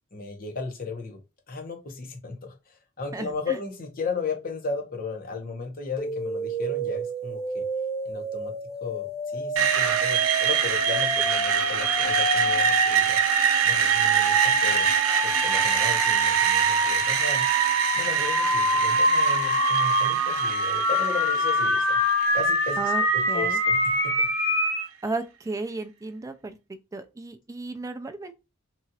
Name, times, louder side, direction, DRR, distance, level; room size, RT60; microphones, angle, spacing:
voice 1, 0.1-1.2 1.5-7.6 8.0-8.5 8.8-13.2 13.6-14.9 15.2-17.5 17.9-21.9 22.3-22.8 23.1-23.8 24.0-24.5, left 4 dB, 45° left, 0.8 m, -35 dB
voice 2, 3.1-3.6 22.8-23.6 25.0-26.6 26.9-28.3, right 3 dB, 15° right, 0.3 m, -34 dB
sound 1, 6.0-24.9, right 1 dB, 75° left, 1.0 m, -26 dB
Screech, 9.6-23.5, right 7 dB, 80° right, 0.6 m, -25 dB
2.9 x 2.4 x 2.7 m
head